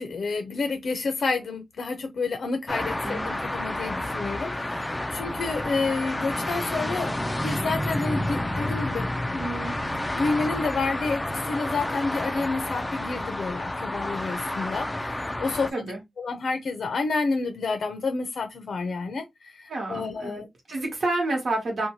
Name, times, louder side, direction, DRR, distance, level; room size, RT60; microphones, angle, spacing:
voice 1, 0.0-7.1 7.4-9.7 10.1-15.9 16.2-20.5, left 3 dB, 75° left, 0.5 m, -29 dB
sound 1, 2.7-15.7, left 1 dB, 15° left, 0.3 m, -30 dB
voice 2, 19.7-21.9, right 2 dB, 60° right, 1.1 m, -29 dB
2.7 x 2.2 x 2.9 m
wide cardioid pair, 125°, 0 cm